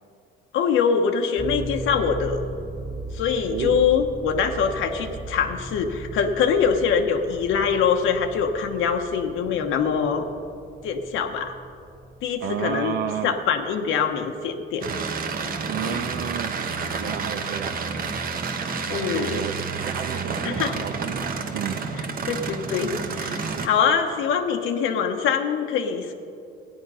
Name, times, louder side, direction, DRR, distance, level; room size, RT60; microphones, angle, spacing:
voice 1, 0.5-2.4 3.1-10.3 10.8-11.6 12.2-13.0 13.2-14.8 15.8-16.0 18.9-19.4 20.4-20.8 22.0-26.1, left 6 dB, 80° left, 5 dB, 1.0 m, -24 dB
sound 1, 1.4-14.6, right 2 dB, 20° right, 2.0 m, -38 dB
voice 2, 12.4-13.3 15.7-16.6 17.0-17.8 18.9-21.8, right 8 dB, 65° right, 7 dB, 0.6 m, -31 dB
sound 2, 14.8-23.7, right 5 dB, 45° right, 1.1 m, -29 dB
15.0 x 9.5 x 5.5 m, 2.6 s
cardioid pair, 125°, 20 cm